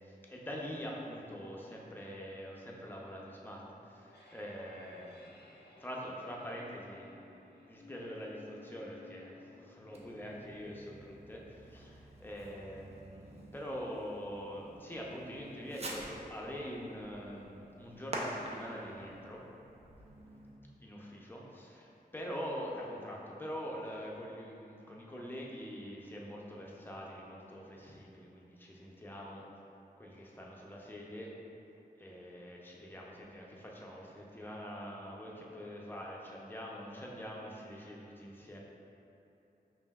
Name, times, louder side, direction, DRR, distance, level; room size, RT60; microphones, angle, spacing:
voice 1, 0.0-5.4 5.8-7.1 7.6-19.4 20.8-29.4 30.0-31.3 32.0-38.6, equal, 10° left, -3 dB, 0.5 m, -44 dB
sound 1, 3.8-14.8, left 3 dB, 90° left, 0.5 m, -60 dB
Fireworks, 9.9-20.6, right 1 dB, 40° right, 0.5 m, -48 dB
5.4 x 2.7 x 2.3 m, 3.0 s
wide cardioid pair, 75°, 17 cm